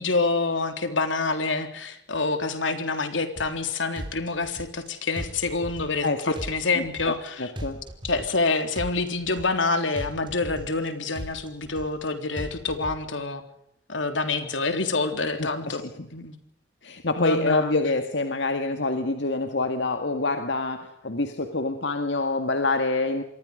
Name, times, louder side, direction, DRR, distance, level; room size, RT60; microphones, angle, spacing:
voice 1, 0.0-7.5 8.0-13.4 13.9-15.8 16.1-16.4 17.2-17.7, left 3 dB, 90° left, 7 dB, 3.6 m, -27 dB
sound 1, 3.4-3.7 3.9-4.9 5.2-6.1 6.3-7.3 7.6-8.5 8.7-9.7 10.0-10.9 11.1-12.1 12.4-13.0, equal, 25° right, 3.7 m, -37 dB
voice 2, 6.0-6.3 6.8-7.1 7.4-7.8 15.4-16.1 16.8-23.2, left 2 dB, 75° left, 7 dB, 2.0 m, -26 dB
27.5 x 23.0 x 5.2 m, 0.72 s
head